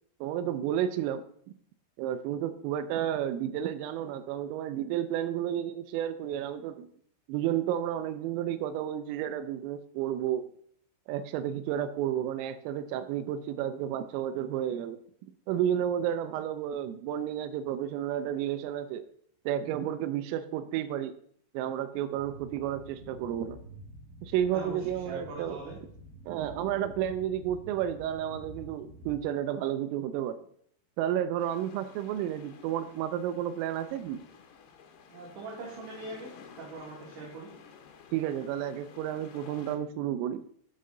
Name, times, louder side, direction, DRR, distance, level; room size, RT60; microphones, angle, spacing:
voice 1, 0.2-1.3 2.0-6.9 7.3-10.4 11.1-15.0 15.5-19.0 19.5-21.1 21.5-23.6 24.2-25.6 26.3-30.5 31.0-34.2 38.1-40.4, right 10 dB, 90° right, 9 dB, 3.2 m, -31 dB
sound 1, 22.2-29.2, equal, 55° right, 2.6 m, -49 dB
voice 2, 24.5-25.8 35.1-36.3 36.6-37.5, right 3 dB, 70° right, -5 dB, 4.5 m, -42 dB
sound 2, 31.4-39.8, left 6 dB, 70° left, 2.7 m, -52 dB
13.5 x 6.7 x 3.8 m, 0.63 s
omnidirectional pair, 5.7 m